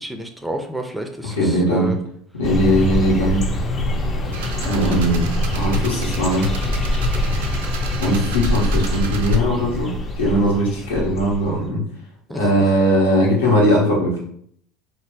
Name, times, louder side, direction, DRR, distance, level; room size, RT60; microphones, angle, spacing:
voice 1, 0.0-1.4 1.7-2.0 12.3-12.4, equal, 5° right, 4 dB, 0.4 m, -29 dB
voice 2, 1.3-1.9 2.3-3.4 4.6-6.5 8.0-11.8 12.3-14.2, equal, 90° left, -5 dB, 0.9 m, -19 dB
sound 1, 2.4-11.6, left 1 dB, 35° left, 0.6 m, -24 dB
sound 2, 4.3-9.4, right 6 dB, 85° right, 0.4 m, -33 dB
3.0 x 2.0 x 3.3 m, 0.66 s
hypercardioid pair, 85°, 0 cm